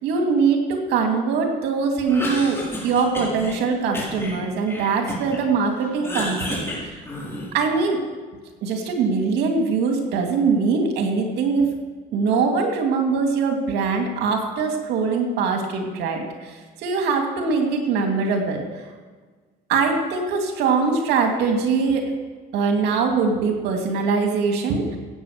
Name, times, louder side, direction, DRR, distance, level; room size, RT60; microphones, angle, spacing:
voice 1, 0.0-7.0 7.5-8.0 8.6-11.7 12.1-18.6 19.7-22.1 22.5-25.0, right 4 dB, 85° right, 3 dB, 2.5 m, -22 dB
Cough, 2.0-3.6 3.9-5.4 5.8-7.7, left 1 dB, 15° left, 4.8 m, -31 dB
16.0 x 8.6 x 6.6 m, 1.4 s
cardioid pair, 110°, 17 cm